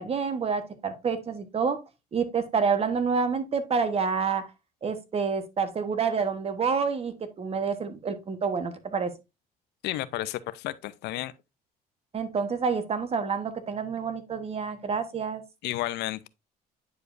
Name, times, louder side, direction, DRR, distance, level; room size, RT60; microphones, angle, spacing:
voice 1, 0.0-1.8 2.1-4.5 4.8-9.1 12.1-15.4, right 5 dB, 35° right, 1.1 m, -28 dB
voice 2, 9.8-11.3 15.6-16.3, left 15 dB, 80° left, 0.5 m, -32 dB
9.5 x 4.9 x 2.5 m
cardioid pair, 110°, 17 cm